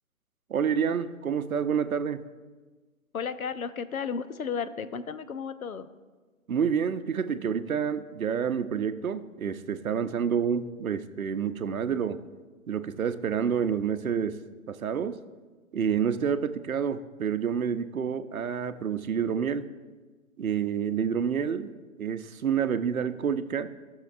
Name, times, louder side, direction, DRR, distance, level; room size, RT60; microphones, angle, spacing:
voice 1, 0.5-2.2 6.5-12.2 12.7-14.4 14.7-15.2 15.7-19.7 20.4-21.7 22.0-23.7, right 7 dB, 80° right, 12 dB, 0.7 m, -28 dB
voice 2, 3.1-5.9, left 6 dB, 80° left, 13 dB, 0.7 m, -33 dB
17.0 x 6.4 x 2.5 m, 1.3 s
figure-of-eight pair, 135°, 42 cm